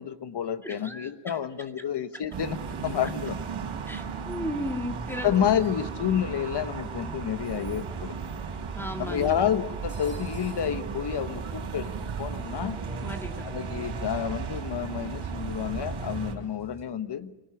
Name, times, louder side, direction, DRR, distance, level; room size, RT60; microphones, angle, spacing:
voice 1, 0.0-3.4 5.2-8.1 9.0-12.8 13.4-17.3, left 9 dB, 55° left, 11 dB, 1.3 m, -29 dB
voice 2, 0.6-1.4 3.9-5.3 8.7-9.4 13.0-13.4, equal, 5° left, 4 dB, 2.0 m, -35 dB
sound 1, 2.3-16.3, right 5 dB, 90° right, 3.8 m, -35 dB
sound 2, 6.4-16.9, left 3 dB, 90° left, 3.4 m, -53 dB
sound 3, 9.0-10.7, left 1 dB, 35° left, 6.7 m, -55 dB
24.0 x 17.5 x 9.9 m, 1.2 s
wide cardioid pair, 110°, 48 cm